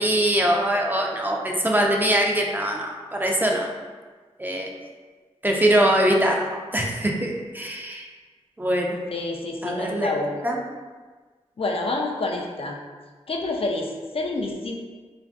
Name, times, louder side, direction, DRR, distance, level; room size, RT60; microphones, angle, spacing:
voice 1, 0.0-3.7 4.4-4.7 5.4-8.0 8.6-9.0 9.6-10.1 10.4-10.6, right 1 dB, 15° right, 0 dB, 0.4 m, -22 dB
voice 2, 9.1-10.5 11.6-12.8 13.3-14.8, left 2 dB, 55° left, 1 dB, 0.4 m, -28 dB
2.5 x 2.3 x 3.4 m, 1.4 s
cardioid pair, 50°, 12 cm